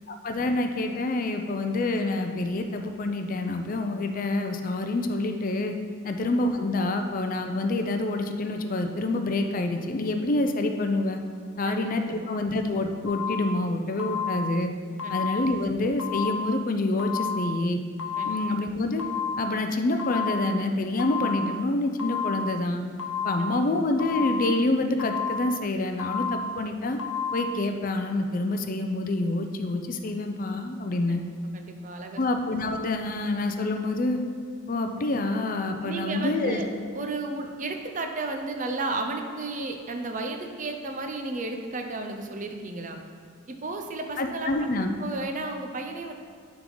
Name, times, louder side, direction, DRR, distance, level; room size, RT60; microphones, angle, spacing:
voice 1, 0.1-5.7 6.0-11.2 11.6-14.7 15.1-17.8 18.3-19.0 19.4-22.8 23.2-27.0 27.3-31.2 32.2-34.2 34.7-36.6 44.2-44.9, left 2 dB, 40° left, 6 dB, 0.4 m, -27 dB
voice 2, 11.6-12.3 15.0-15.3 18.2-18.4 23.4-23.5 31.1-31.2 31.5-32.2 35.8-36.6 36.9-43.0 43.5-44.7 45.0-46.1, right 2 dB, 40° right, 4 dB, 0.5 m, -33 dB
sound 1, 13.1-13.6 14.0-14.6 15.0-15.6 16.0-16.6 17.0-17.6 18.0-18.6 19.0-19.6 20.0-20.6 21.0-21.6 22.0-22.6 23.0-23.6 24.0-24.6 25.0-25.6 26.0-26.6 27.0-27.6, left 4 dB, 75° left, 0.8 m, -31 dB
9.1 x 3.6 x 3.8 m, 2.3 s
head